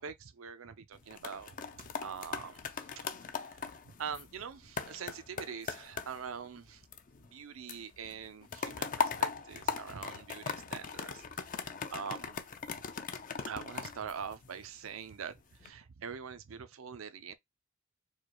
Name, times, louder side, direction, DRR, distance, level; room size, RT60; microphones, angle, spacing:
voice 1, 0.0-6.8 7.3-11.2 11.9-12.4 13.5-17.3, right 6 dB, 85° right, 0.6 m, -44 dB
sound 1, 0.9-7.4 7.7-14.9 15.4-15.7, left 6 dB, 40° left, 0.5 m, -39 dB
4.7 x 2.3 x 3.0 m
head